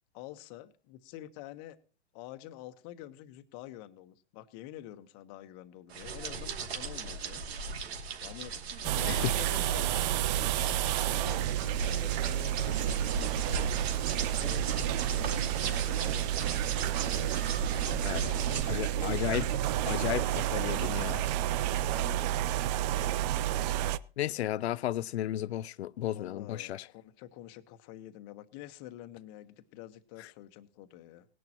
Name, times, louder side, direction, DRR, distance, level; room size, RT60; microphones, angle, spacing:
voice 1, 0.1-1.8 2.1-7.4 8.2-8.6 8.9-13.7 14.2-16.6 17.0-17.3 17.7-19.8 20.7-21.4 21.8-23.2 26.1-31.3, left 13 dB, 40° left, 1.2 m, -47 dB
sound 1, 5.9-18.6, right 4 dB, 75° right, 2.7 m, -38 dB
sound 2, 8.8-24.0, right 12 dB, 40° right, 0.6 m, -30 dB
voice 2, 18.7-19.4 19.9-21.2 24.2-26.9, left 13 dB, 80° left, 0.6 m, -33 dB
19.0 x 11.0 x 3.0 m
hypercardioid pair, 130°, 32 cm